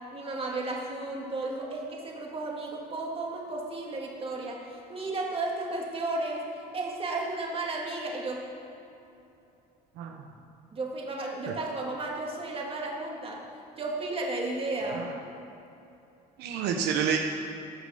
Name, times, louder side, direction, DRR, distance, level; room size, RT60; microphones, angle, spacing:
voice 1, 0.1-8.4 10.7-13.5 13.8-15.1, right 2 dB, 35° right, -1 dB, 2.1 m, -33 dB
voice 2, 16.4-17.2, right 7 dB, 90° right, 3 dB, 0.9 m, -29 dB
14.5 x 6.4 x 5.7 m, 2.8 s
cardioid pair, 110°, 17 cm